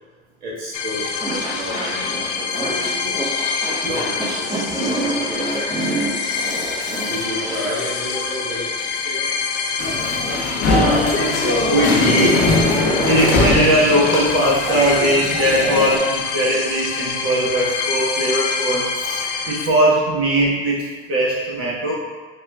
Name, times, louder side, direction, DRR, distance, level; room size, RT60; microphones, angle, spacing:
voice 1, 0.4-3.1 3.8-6.3 7.1-9.3 19.6-19.7, equal, 70° right, -7 dB, 1.5 m, -32 dB
sound 1, 0.7-19.7, left 5 dB, 85° left, 0.5 m, -26 dB
sound 2, 1.2-7.8, right 2 dB, 10° right, 0.8 m, -27 dB
voice 2, 6.6-6.9 10.0-10.2 10.7-19.2 19.5-21.9, right 1 dB, 40° right, -6 dB, 1.0 m, -20 dB
sound 3, 9.8-16.0, left 2 dB, 45° left, 0.9 m, -21 dB
5.9 x 2.4 x 2.3 m, 1.4 s
hypercardioid pair, 80°, 34 cm